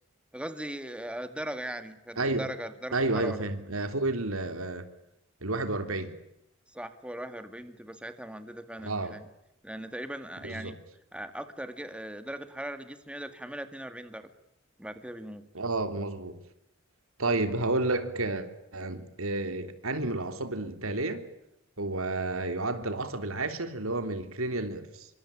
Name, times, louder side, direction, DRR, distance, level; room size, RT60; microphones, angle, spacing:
voice 1, 0.3-3.4 6.7-9.3 9.6-10.8 11.1-14.3 14.8-15.4, right 1 dB, 5° right, 2.1 m, -39 dB
voice 2, 2.2-2.5 2.9-4.9 5.4-6.1 8.8-9.2 10.4-10.7 15.5-16.4 17.2-18.5 18.7-21.2 21.8-25.1, right 2 dB, 80° right, 3.3 m, -31 dB
27.5 x 24.5 x 8.8 m
head